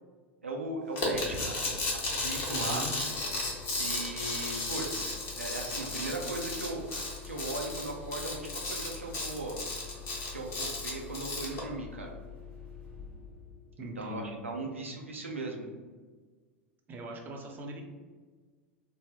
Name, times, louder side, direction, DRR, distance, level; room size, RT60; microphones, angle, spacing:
voice 1, 0.4-1.6 1.9-2.8 3.8-6.8 7.2-9.6 10.3-12.1 14.0-15.7, right 2 dB, 85° right, 0 dB, 0.5 m, -38 dB
sound 1, 1.0-11.6, left 2 dB, 40° left, 1.1 m, -34 dB
sound 2, 1.1-14.6, left 5 dB, 10° left, 1.3 m, -47 dB
voice 2, 2.5-2.9 13.8-14.3 16.9-17.8, right 2 dB, 25° right, 1 dB, 0.6 m, -41 dB
3.3 x 2.1 x 3.4 m, 1.4 s
figure-of-eight pair, 85°, 7 cm